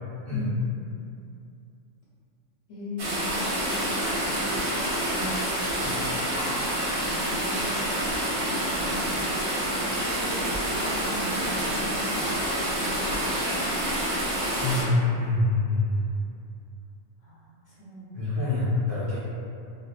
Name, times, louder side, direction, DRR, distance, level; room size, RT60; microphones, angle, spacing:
voice 1, 0.3-0.9 2.7-5.0 7.0-9.0 9.3-14.2 17.2-18.3, left 1 dB, 80° left, -12 dB, 1.0 m, -41 dB
sound 1, 3.0-14.8, right 1 dB, 60° right, 0.7 m, -27 dB
voice 2, 5.8-6.3 14.6-16.1 18.1-19.2, left 2 dB, 25° left, -13 dB, 0.6 m, -26 dB
2.5 x 2.1 x 2.3 m, 2.5 s
omnidirectional pair, 1.3 m